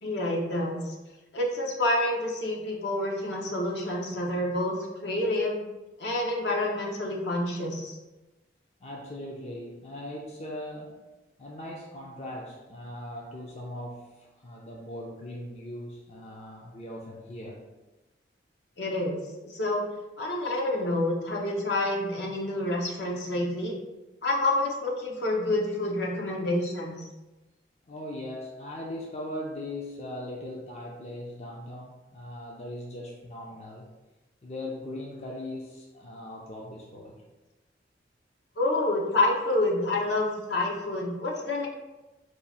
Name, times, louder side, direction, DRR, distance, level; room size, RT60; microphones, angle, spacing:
voice 1, 0.0-0.9 1.3-5.6 6.0-8.0 18.8-19.8 20.2-23.7 24.2-27.1 38.6-41.7, left 1 dB, 70° left, -2 dB, 0.9 m, -28 dB
voice 2, 8.8-11.0 11.4-17.7 27.8-33.9 34.4-37.2, left 1 dB, 35° left, -2 dB, 0.5 m, -39 dB
4.7 x 2.4 x 4.1 m, 1.1 s
head